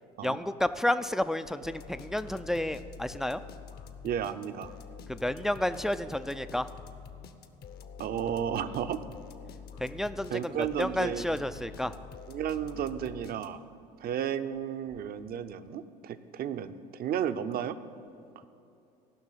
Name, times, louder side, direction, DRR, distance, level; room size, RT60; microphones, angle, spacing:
voice 1, 0.2-3.4 5.1-6.7 9.8-11.9, left 1 dB, ahead, 12 dB, 0.4 m, -31 dB
sound 1, 1.6-13.8, left 7 dB, 50° left, 0.9 m, -47 dB
voice 2, 4.0-4.7 8.0-9.0 10.3-11.4 12.3-13.6 14.0-17.8, right 9 dB, 45° right, 11 dB, 0.6 m, -33 dB
15.0 x 6.0 x 7.4 m, 2.7 s
hypercardioid pair, 65°, 21 cm